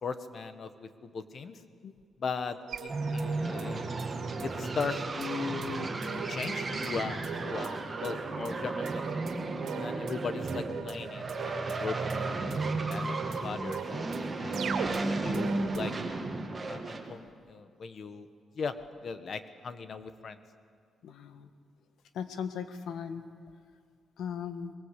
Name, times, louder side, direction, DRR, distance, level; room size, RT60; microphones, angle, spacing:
voice 1, 0.0-1.6 2.2-3.9 4.4-6.0 6.3-9.0 9.8-12.4 12.8-13.1 13.4-14.1 14.4-14.7 15.1-15.9 16.7-18.3 18.6-18.8 19.0-20.4, left 5 dB, 50° left, 10 dB, 1.4 m, -38 dB
sound 1, 2.7-15.8, right 7 dB, 80° right, 2.5 m, -41 dB
sound 2, 2.9-17.1, right 3 dB, 25° right, 2.4 m, -34 dB
voice 2, 21.0-21.5 22.1-23.2 24.2-24.7, left 7 dB, 90° left, 8 dB, 1.7 m, -38 dB
23.5 x 22.0 x 8.3 m, 2.1 s
cardioid pair, 120°, 0 cm